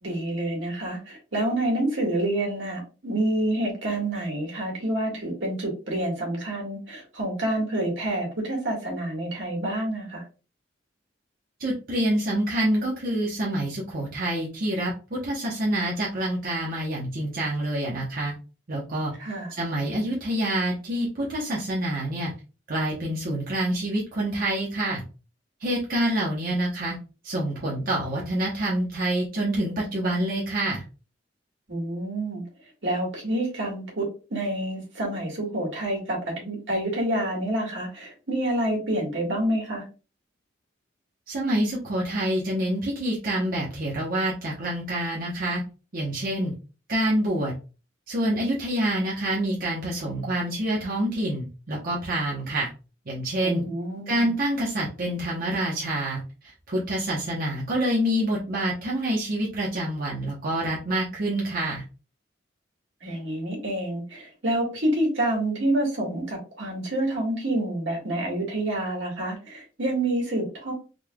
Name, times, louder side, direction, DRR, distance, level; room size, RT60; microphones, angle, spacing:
voice 1, 0.0-10.2 19.2-19.5 31.7-32.4 32.8-39.8 53.4-54.3 63.0-70.7, right 1 dB, 80° right, -1 dB, 1.8 m, -28 dB
voice 2, 11.6-18.3 18.7-19.1 19.5-22.3 22.7-25.0 25.6-27.0 27.2-30.8 41.3-45.6 45.9-46.5 46.9-47.5 48.1-52.7 53.1-53.6 54.1-56.2 56.7-61.8, right 1 dB, 50° right, -4 dB, 0.9 m, -27 dB
3.9 x 3.2 x 2.2 m, 0.33 s
head